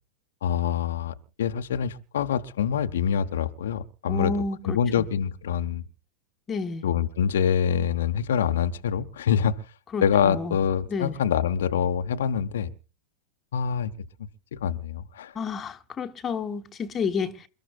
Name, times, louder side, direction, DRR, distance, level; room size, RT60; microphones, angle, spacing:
voice 1, 0.4-4.4 4.6-5.8 6.8-9.5 10.0-12.7 13.5-13.9 14.5-15.3, left 8 dB, 60° left, 0.9 m, -25 dB
voice 2, 4.1-5.0 6.5-6.8 9.9-10.6 10.9-11.2 15.3-17.4, left 4 dB, 20° left, 1.2 m, -30 dB
28.0 x 13.5 x 2.4 m
figure-of-eight pair, 90°, 0 cm